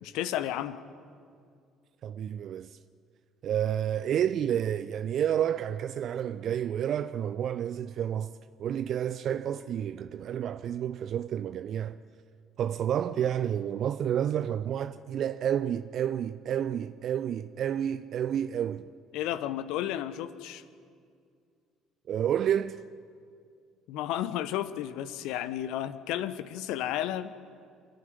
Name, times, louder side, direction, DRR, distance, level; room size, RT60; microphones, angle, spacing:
voice 1, 0.0-0.8 19.1-20.6 23.9-27.3, left 12 dB, 60° left, 0.9 m, -32 dB
voice 2, 2.0-2.8 3.4-12.0 12.6-18.9 22.1-22.8, right 9 dB, 50° right, 0.5 m, -30 dB
28.0 x 10.5 x 9.8 m
figure-of-eight pair, 50°, 0 cm